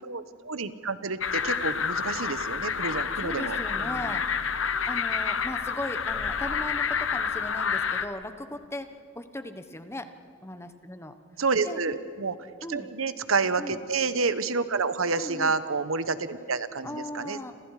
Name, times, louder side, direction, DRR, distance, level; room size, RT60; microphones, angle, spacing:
voice 1, 0.0-4.2 11.4-12.4 12.7-17.4, right 4 dB, 80° right, 13 dB, 1.1 m, -29 dB
sound 1, 1.2-8.1, left 6 dB, 65° left, 1.2 m, -29 dB
voice 2, 3.2-4.3 4.9-8.9 9.1-10.1 10.4-11.1 11.6-11.8 12.6-12.9 13.6-13.8 15.1-15.5 16.8-17.5, left 1 dB, 15° left, 9 dB, 1.2 m, -37 dB
30.0 x 27.0 x 4.9 m, 2.4 s
head